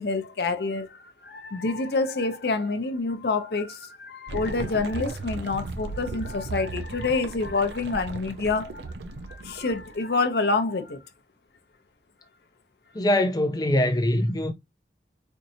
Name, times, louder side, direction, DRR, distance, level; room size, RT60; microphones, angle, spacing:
voice 1, 0.0-8.8 9.3-11.0, left 3 dB, 65° left, 0.6 m, -27 dB
sound 1, 4.3-10.0, right 3 dB, 80° right, 0.6 m, -36 dB
voice 2, 12.9-14.5, left 1 dB, 20° left, 0.4 m, -23 dB
4.4 x 2.7 x 2.7 m
head